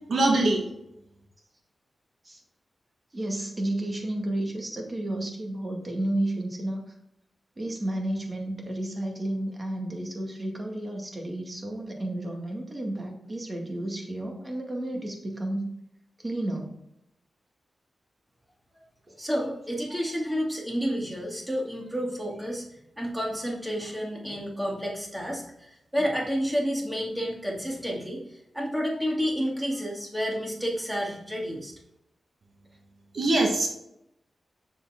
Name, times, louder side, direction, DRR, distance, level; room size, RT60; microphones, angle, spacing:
voice 1, 0.1-0.6 33.1-33.7, right 2 dB, 65° right, 1 dB, 1.6 m, -22 dB
voice 2, 3.1-6.9 7.6-15.7 16.2-16.8 19.1-19.2, right 1 dB, 30° right, 1 dB, 2.0 m, -32 dB
voice 3, 19.2-22.7 23.0-31.7, equal, 5° right, -2 dB, 2.5 m, -30 dB
7.0 x 6.8 x 3.7 m, 0.82 s
wide cardioid pair, 90°, 0 cm